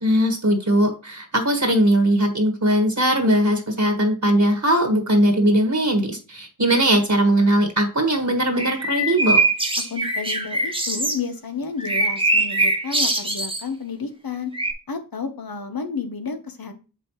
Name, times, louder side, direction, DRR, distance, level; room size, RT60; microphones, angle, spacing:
voice 1, 0.0-9.4, right 1 dB, 55° right, 4 dB, 1.5 m, -19 dB
sound 1, 8.6-11.2 11.8-13.6 14.5-14.7, right 2 dB, 15° right, 1.1 m, -22 dB
voice 2, 9.9-14.5 14.9-16.7, left 5 dB, 80° left, 7 dB, 1.1 m, -31 dB
6.5 x 5.2 x 3.1 m, 0.33 s
wide cardioid pair, 55°, 35 cm